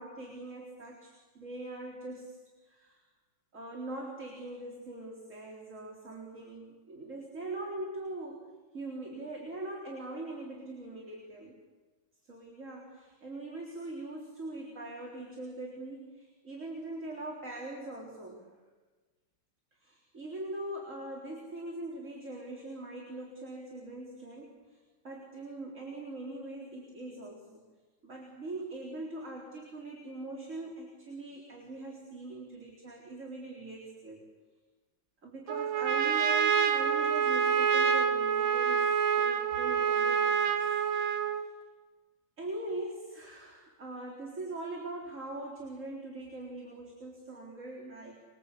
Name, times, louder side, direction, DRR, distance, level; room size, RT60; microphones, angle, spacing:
voice 1, 0.0-2.3 2.7-3.0 3.5-8.5 8.7-11.5 12.3-18.5 19.8-24.8 25.0-27.6 28.0-34.2 35.2-40.6 42.4-48.1, right 2 dB, 35° right, -2 dB, 4.2 m, -42 dB
Trumpet, 35.5-41.5, right 7 dB, 80° right, 2.3 m, -27 dB
26.0 x 22.5 x 8.4 m, 1.3 s
omnidirectional pair, 2.2 m